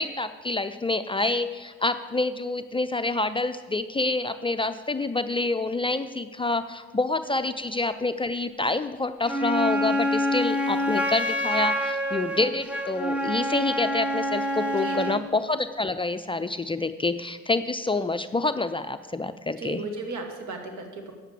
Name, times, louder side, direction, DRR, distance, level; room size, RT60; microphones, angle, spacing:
voice 1, 0.0-19.8, left 2 dB, 15° left, 9 dB, 0.5 m, -27 dB
Wind instrument woodwind instrument, 9.3-15.3, equal, 5° right, 1.1 m, -27 dB
voice 2, 14.8-15.2 19.6-21.1, right 3 dB, 65° right, 4 dB, 1.9 m, -35 dB
9.1 x 7.3 x 7.1 m, 1.4 s
hypercardioid pair, 60°, 31 cm